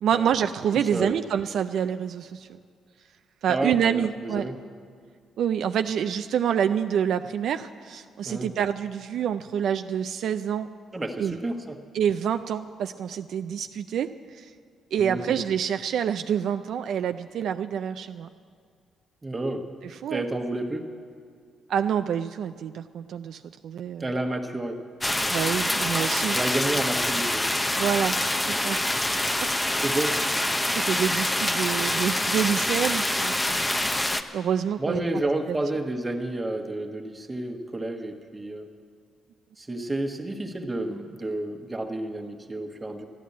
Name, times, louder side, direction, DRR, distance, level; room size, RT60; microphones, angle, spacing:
voice 1, 0.0-2.6 3.4-4.5 5.4-10.7 11.2-11.4 11.9-14.5 14.9-18.3 19.8-20.2 21.7-24.2 25.3-26.4 27.7-28.2 28.5-28.9 30.8-35.1 35.5-35.6, right 8 dB, 70° right, 9 dB, 0.3 m, -27 dB
voice 2, 0.7-1.2 3.5-4.6 8.3-8.5 10.9-11.8 15.0-15.4 19.2-19.7 20.1-20.9 24.0-24.8 26.3-27.4 29.8-30.2 34.8-38.7 39.6-43.0, right 2 dB, 20° right, 4 dB, 1.3 m, -30 dB
sound 1, 25.0-34.2, left 1 dB, 15° left, 0.7 m, -26 dB
13.0 x 10.0 x 8.4 m, 2.1 s
cardioid pair, 90°, 0 cm